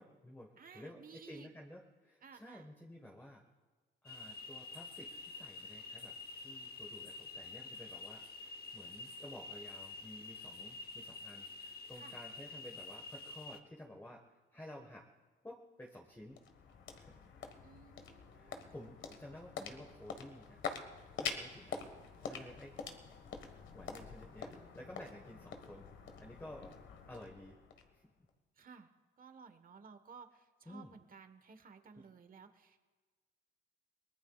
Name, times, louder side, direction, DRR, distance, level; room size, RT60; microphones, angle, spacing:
voice 1, 0.0-3.4 4.0-14.2 14.5-15.1 15.4-16.4 17.0-17.2 18.4-20.6 21.2-21.8 22.2-22.8 23.7-25.9 26.2-26.8 27.1-27.6 27.9-28.1 30.7-30.9 32.0-32.1, left 1 dB, 10° left, 1 dB, 1.4 m, -53 dB
voice 2, 0.6-1.5 2.2-2.6 11.9-12.2 17.6-18.6 28.6-28.9 29.2-32.8, right 6 dB, 45° right, 9 dB, 1.3 m, -56 dB
sound 1, 4.1-13.6, left 3 dB, 50° left, 0.9 m, -48 dB
sound 2, 15.9-28.3, left 5 dB, 75° left, 1.6 m, -46 dB
23.0 x 19.5 x 2.4 m, 1.4 s
cardioid pair, 90°, 20 cm